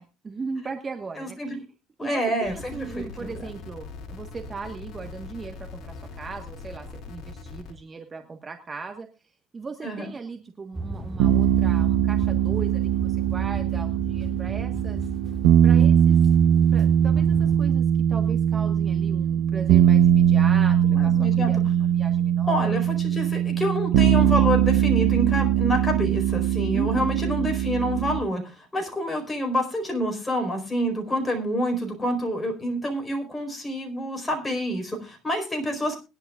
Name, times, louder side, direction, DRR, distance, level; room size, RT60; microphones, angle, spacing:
voice 1, 0.0-1.6 2.0-9.1 9.5-15.0 15.6-16.2 16.7-22.8 26.7-27.1, right 4 dB, 25° right, 5 dB, 1.4 m, -38 dB
voice 2, 1.2-1.6 2.0-3.3 9.8-10.1 20.9-21.5 22.5-36.0, equal, 15° left, 3 dB, 4.5 m, -28 dB
sound 1, 2.4-7.7, left 4 dB, 55° left, 2.6 m, -41 dB
sound 2, 10.7-17.6, right 2 dB, 5° right, 3.0 m, -36 dB
sound 3, 11.2-28.2, right 10 dB, 80° right, 0.9 m, -21 dB
21.0 x 11.0 x 2.4 m, 0.29 s
cardioid pair, 115°, 0 cm